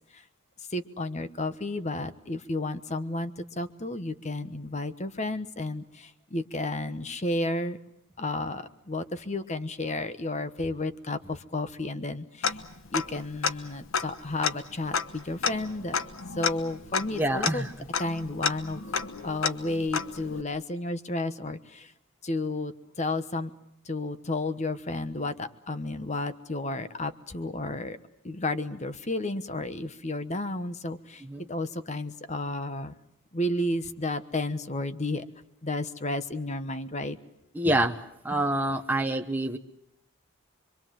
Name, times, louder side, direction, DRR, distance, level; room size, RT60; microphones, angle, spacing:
voice 1, 0.7-7.8 8.2-12.5 12.9-16.0 16.4-17.6 18.0-18.8 19.2-21.9 22.2-23.5 23.9-28.0 28.2-31.2 31.5-32.9 33.3-35.2 35.6-37.2, left 2 dB, 35° left, 11 dB, 1.2 m, -32 dB
Tick-tock, 12.4-13.2 13.4-13.5 13.9-20.4, left 6 dB, 75° left, 1.2 m, -31 dB
voice 2, 17.1-17.7 31.2-31.5 37.5-38.0 38.2-39.6, right 1 dB, 10° right, 4 dB, 1.0 m, -27 dB
26.5 x 24.0 x 7.6 m, 0.79 s
head